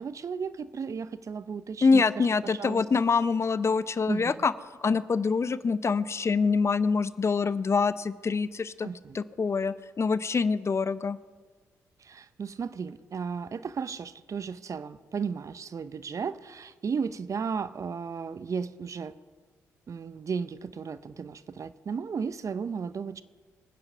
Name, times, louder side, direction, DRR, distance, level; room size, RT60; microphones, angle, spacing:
voice 1, 0.0-2.8 4.1-4.4 8.8-9.2 12.0-19.1 19.9-23.2, right 6 dB, 50° right, 15 dB, 0.7 m, -34 dB
voice 2, 1.8-4.5 4.8-8.9 9.1-11.2, left 4 dB, 40° left, 16 dB, 0.7 m, -25 dB
23.5 x 9.8 x 5.5 m, 1.5 s
hypercardioid pair, 45°, 7 cm